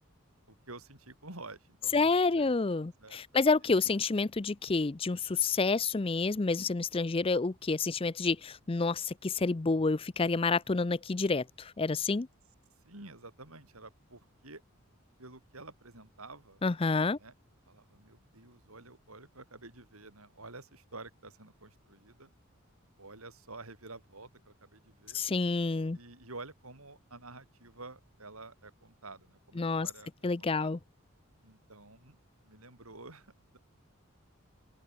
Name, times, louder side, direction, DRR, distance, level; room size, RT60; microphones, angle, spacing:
voice 1, 0.5-2.6 3.0-3.7 12.8-14.6 15.2-16.6 17.1-17.3 17.7-22.3 23.0-25.2 25.9-30.7 31.4-32.2 32.4-33.6, right 3 dB, 80° right, 7.8 m, -50 dB
voice 2, 1.9-12.3 16.6-17.2 25.1-26.0 29.6-29.9 30.2-30.8, left 3 dB, 25° left, 0.5 m, -29 dB
open air
head